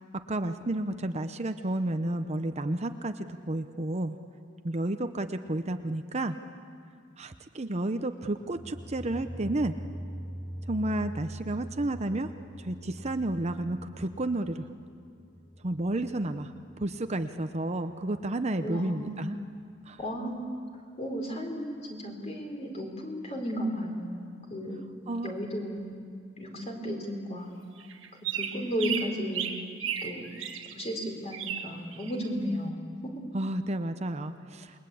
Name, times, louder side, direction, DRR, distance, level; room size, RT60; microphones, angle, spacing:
voice 1, 0.3-4.2 4.6-6.4 7.2-9.7 10.7-12.3 12.6-14.7 15.6-16.5 16.8-19.4 19.9-20.0 25.1-25.3 33.3-34.7, right 1 dB, 35° right, 8 dB, 0.8 m, -31 dB
sound 1, 8.4-17.3, right 1 dB, 90° left, 5.2 m, -43 dB
voice 2, 18.6-19.4 20.0-20.6 21.0-24.9 25.2-25.9 26.4-27.5 28.3-29.6 30.0-30.3 30.7-33.1, equal, 35° left, 2 dB, 4.5 m, -34 dB
sound 2, 27.8-30.8 31.3-32.2, right 8 dB, 85° right, 1.7 m, -35 dB
28.5 x 21.5 x 8.5 m, 2.2 s
head